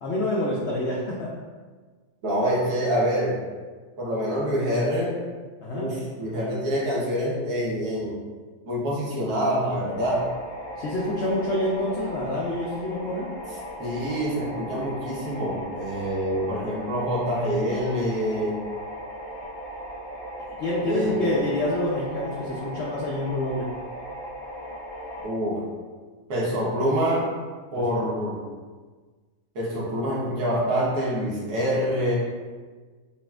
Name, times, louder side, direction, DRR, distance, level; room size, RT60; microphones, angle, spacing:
voice 1, 0.0-1.3 5.6-5.9 10.8-13.3 20.6-23.7 27.7-28.3, left 1 dB, 85° left, -4 dB, 0.5 m, -27 dB
voice 2, 2.2-3.4 4.0-5.1 5.7-8.2 8.7-10.2 13.8-18.6 20.9-21.3 25.2-25.6 26.3-27.3 27.7-28.4 29.5-32.1, equal, 70° right, -5 dB, 1.5 m, -26 dB
sound 1, 9.9-25.3, equal, 55° left, 1.4 m, -38 dB
5.4 x 2.5 x 2.3 m, 1.4 s
omnidirectional pair, 1.8 m